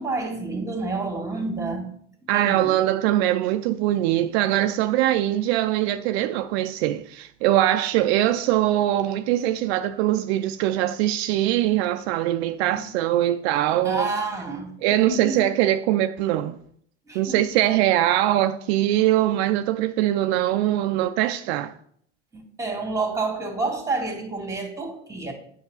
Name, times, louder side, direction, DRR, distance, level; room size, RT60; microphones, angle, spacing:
voice 1, 0.0-1.9 2.3-2.8 12.7-13.0 13.8-15.5 17.1-17.5 22.3-25.3, right 3 dB, 10° right, 2.1 m, -29 dB
voice 2, 2.3-14.1 14.8-16.6 17.1-21.7, right 13 dB, 65° right, 0.5 m, -22 dB
8.0 x 5.8 x 4.0 m
hypercardioid pair, 85°, 34 cm